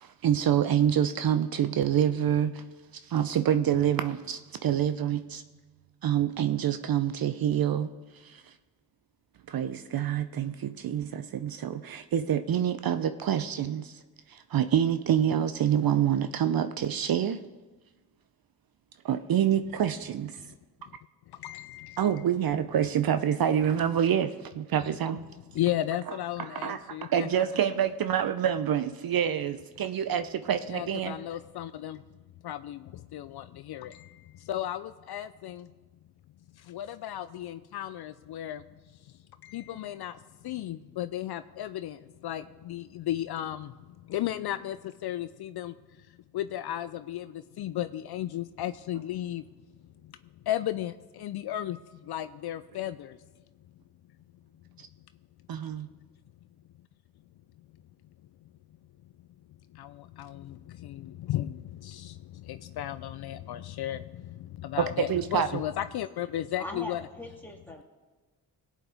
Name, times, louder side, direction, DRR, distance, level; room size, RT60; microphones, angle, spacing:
voice 1, 0.0-2.6 3.0-5.4 6.0-7.9 8.1-8.5 9.5-14.0 14.3-17.4 19.0-20.4 22.0-25.2 26.1-31.2 54.8-54.9 55.5-55.9 64.8-65.6, right 9 dB, 50° right, 10 dB, 0.7 m, -27 dB
voice 2, 21.3-22.1 25.5-27.3 30.7-32.0 32.4-35.7 36.6-38.6 39.4-40.2 40.4-43.7 44.1-45.7 46.3-49.4 50.0-50.1 50.5-53.2 59.7-67.1, left 12 dB, 60° left, 12 dB, 0.5 m, -35 dB
voice 3, 66.6-67.8, left 1 dB, 5° left, -1 dB, 2.6 m, -41 dB
18.5 x 8.4 x 3.5 m, 1.3 s
hypercardioid pair, 45°, 44 cm